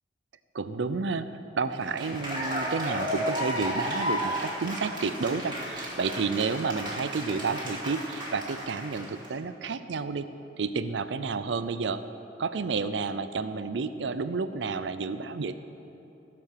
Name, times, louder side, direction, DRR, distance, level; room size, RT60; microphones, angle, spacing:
voice 1, 0.5-10.3 10.6-12.0 12.4-15.5, right 4 dB, 85° right, 12 dB, 0.5 m, -30 dB
Cheering / Applause, 1.7-9.3, equal, 25° right, 2.3 m, -33 dB
14.5 x 6.8 x 6.6 m, 2.9 s
head